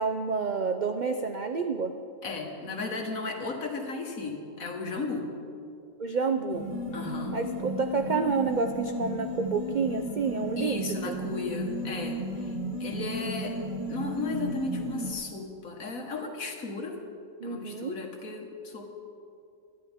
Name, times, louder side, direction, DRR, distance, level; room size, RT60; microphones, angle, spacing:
voice 1, 0.0-2.0 6.0-6.7 7.3-11.2 17.4-18.0, right 5 dB, 75° right, 6 dB, 0.4 m, -29 dB
voice 2, 2.2-5.3 6.9-7.4 10.6-12.5 12.8-13.6 13.9-17.0 17.4-18.9, left 3 dB, 65° left, 2 dB, 2.0 m, -35 dB
sound 1, 6.5-15.1, equal, 20° right, 1.6 m, -34 dB
21.5 x 12.5 x 3.6 m, 2.5 s
omnidirectional pair, 1.6 m